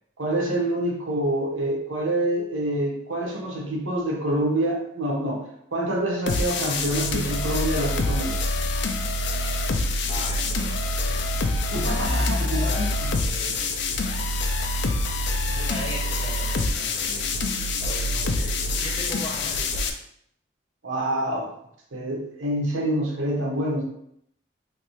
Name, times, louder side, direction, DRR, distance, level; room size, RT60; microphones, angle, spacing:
voice 1, 0.2-5.4 5.7-8.4 11.7-13.1 20.8-21.5 21.9-23.8, right 1 dB, 85° right, -1 dB, 0.9 m, -26 dB
sound 1, 6.3-19.9, left 2 dB, 65° left, 0.4 m, -26 dB
voice 2, 10.1-11.3 12.6-13.0 13.2-13.7 15.5-17.5 17.8-19.9, left 1 dB, 25° left, -2 dB, 0.6 m, -38 dB
3.4 x 2.7 x 2.8 m, 0.72 s
head